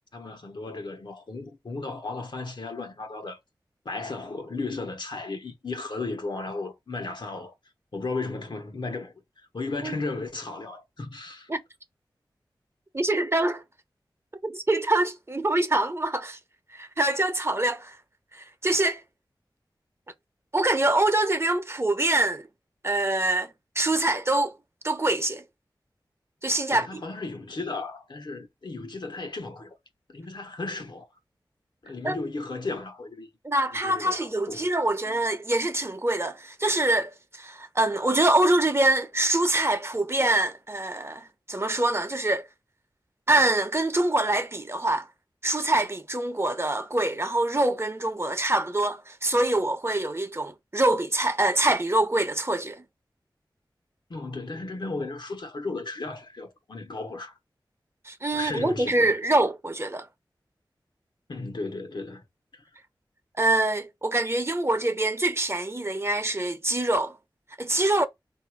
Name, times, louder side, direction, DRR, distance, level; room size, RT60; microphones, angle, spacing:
voice 1, 0.1-3.4 3.8-7.5 7.9-11.5 26.7-29.8 30.1-31.1 31.8-33.3 33.7-34.6 54.1-57.3 58.3-59.2 61.3-62.2 62.5-62.6, left 3 dB, 65° left, 1.2 m, -35 dB
voice 2, 12.9-13.6 14.4-16.4 16.7-17.9 18.3-19.0 20.5-22.5 22.8-23.5 23.8-24.5 24.8-25.4 26.4-27.0 32.0-32.2 33.4-42.5 43.3-45.1 45.4-52.8 58.0-60.1 63.4-67.2 67.6-68.1, right 2 dB, 30° right, 0.9 m, -25 dB
3.9 x 2.8 x 4.8 m
wide cardioid pair, 50°, 8 cm